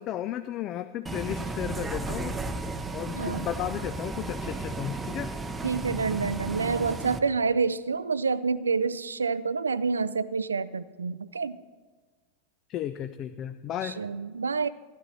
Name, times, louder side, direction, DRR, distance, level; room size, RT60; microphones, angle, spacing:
voice 1, 0.0-2.4 2.9-5.3 12.7-14.0, left 11 dB, 35° left, 11 dB, 0.4 m, -34 dB
Bus, 1.1-7.2, right 3 dB, 10° right, 0.7 m, -34 dB
voice 2, 3.2-3.5 5.6-11.6 13.8-14.7, right 4 dB, 75° right, 16 dB, 0.4 m, -28 dB
14.0 x 11.0 x 4.1 m, 1.4 s
figure-of-eight pair, 90°, 0 cm